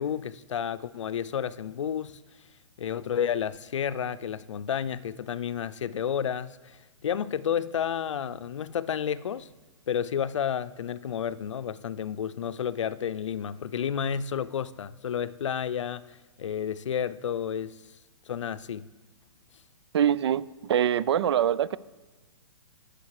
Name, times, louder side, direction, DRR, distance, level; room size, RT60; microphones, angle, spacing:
voice 1, 0.0-2.2 2.8-6.8 7.0-9.5 9.9-17.8 18.3-18.9, left 8 dB, 80° left, 0.6 m, -31 dB
voice 2, 19.9-21.8, right 9 dB, 60° right, 0.5 m, -24 dB
17.0 x 6.7 x 4.8 m
hypercardioid pair, 160°, 16 cm